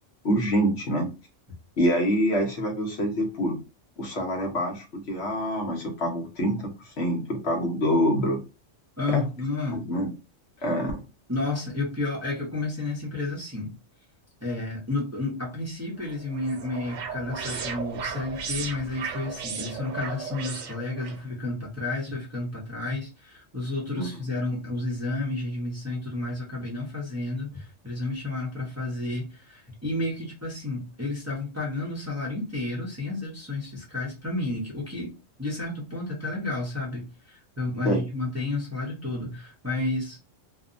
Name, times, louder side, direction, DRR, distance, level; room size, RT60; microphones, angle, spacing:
voice 1, 0.2-1.1 1.8-3.6 4.0-8.4 9.1-9.3 9.7-10.1 10.6-11.0 23.9-24.1 37.8-38.0, equal, 60° left, 2 dB, 0.9 m, -26 dB
voice 2, 9.0-9.8 11.3-13.7 14.4-35.1 35.4-40.2, left 2 dB, 15° right, -4 dB, 0.6 m, -31 dB
sound 1, 16.0-21.2, right 6 dB, 90° right, 1.0 m, -35 dB
2.6 x 2.1 x 2.5 m, 0.29 s
omnidirectional pair, 1.3 m